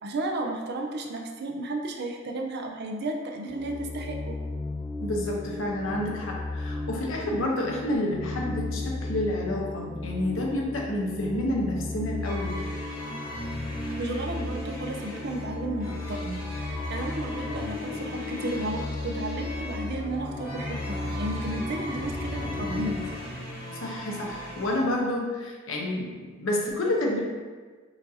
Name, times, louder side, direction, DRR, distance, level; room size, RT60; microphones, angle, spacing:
voice 1, 0.0-4.4 14.0-23.4, right 2 dB, 55° right, 2 dB, 0.5 m, -33 dB
sound 1, 3.5-23.3, left 2 dB, 20° left, 0.6 m, -35 dB
voice 2, 5.0-12.9 23.8-27.2, left 1 dB, 70° left, -1 dB, 0.8 m, -29 dB
sound 2, 12.2-24.8, left 1 dB, 45° left, 0.9 m, -41 dB
sound 3, 13.0-25.0, left 1 dB, 20° right, 0.8 m, -40 dB
5.8 x 2.6 x 2.7 m, 1.4 s
head